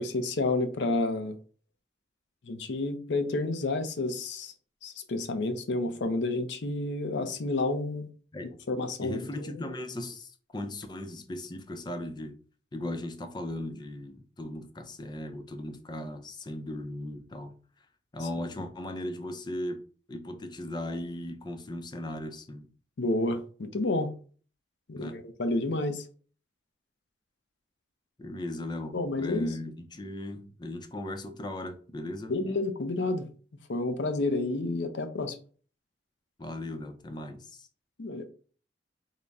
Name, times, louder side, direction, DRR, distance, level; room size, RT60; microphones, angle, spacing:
voice 1, 0.0-1.4 2.4-4.5 4.8-8.1 8.7-9.5 18.3-18.4 23.0-24.1 24.9-26.0 28.9-29.6 32.3-33.3 33.7-35.4 38.0-38.2, left 2 dB, 85° left, 0.6 m, -30 dB
voice 2, 9.0-12.4 12.7-17.6 18.1-22.7 24.9-25.2 28.2-32.3 36.4-37.7, left 1 dB, 25° left, 0.5 m, -37 dB
4.0 x 2.1 x 3.4 m
head